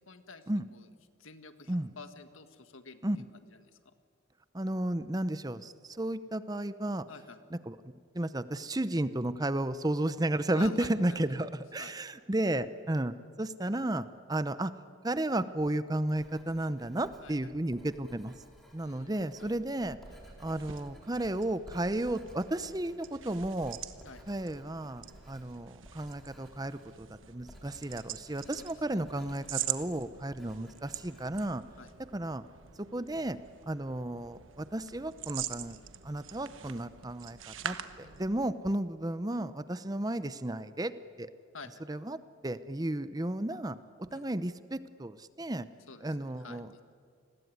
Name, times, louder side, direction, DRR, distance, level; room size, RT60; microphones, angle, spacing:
voice 1, 0.1-0.4 0.7-0.9 1.2-3.9 7.1-7.4 10.5-11.2 11.8-11.9 17.2-17.3 18.8-19.5 24.0-24.2 28.6-29.3 31.8-31.9 38.0-38.3 41.5-41.8 44.1-44.4 45.9-46.8, left 4 dB, 85° left, 9 dB, 1.9 m, -50 dB
voice 2, 4.5-7.0 7.5-7.8 8.1-14.7 15.0-18.3 18.7-20.0 20.4-23.8 24.3-31.6 32.1-32.4 32.8-33.4 33.7-35.8 36.0-40.9 41.2-41.3 41.9-42.2 42.4-45.7 46.0-46.8, right 1 dB, 20° right, 13 dB, 0.7 m, -33 dB
Writing, 16.1-32.2, equal, ahead, 4.2 m, -56 dB
sound 1, 19.7-38.6, right 10 dB, 75° right, 1.2 m, -44 dB
29.5 x 21.0 x 9.5 m, 2.2 s
head